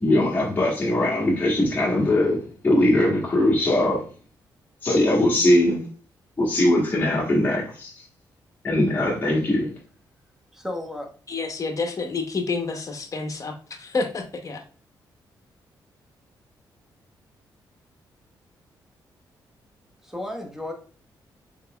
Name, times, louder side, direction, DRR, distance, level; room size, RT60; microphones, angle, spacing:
voice 1, 0.0-4.1 4.8-5.8 6.4-7.9 8.6-9.7, left 1 dB, 20° left, 1.2 m, -21 dB
voice 2, 10.5-11.1 20.0-20.7, left 1 dB, 5° right, 1.0 m, -33 dB
voice 3, 11.3-14.6, left 4 dB, 40° left, 0.9 m, -29 dB
3.9 x 3.8 x 2.3 m
cardioid pair, 75°, 8 cm